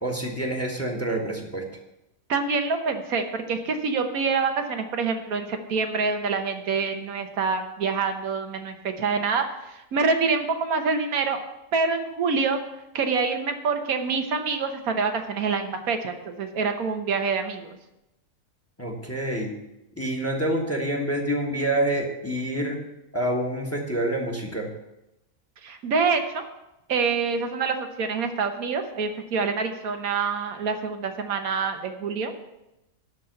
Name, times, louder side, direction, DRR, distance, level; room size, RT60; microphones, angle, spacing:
voice 1, 0.0-1.7 18.8-19.5 20.0-22.8 23.1-24.7, right 1 dB, 10° left, 1 dB, 1.4 m, -27 dB
voice 2, 2.3-11.4 11.7-12.6 12.9-17.8 25.6-26.4 26.9-32.3, right 5 dB, 90° right, 6 dB, 1.5 m, -26 dB
12.0 x 4.1 x 7.9 m, 0.91 s
omnidirectional pair, 1.5 m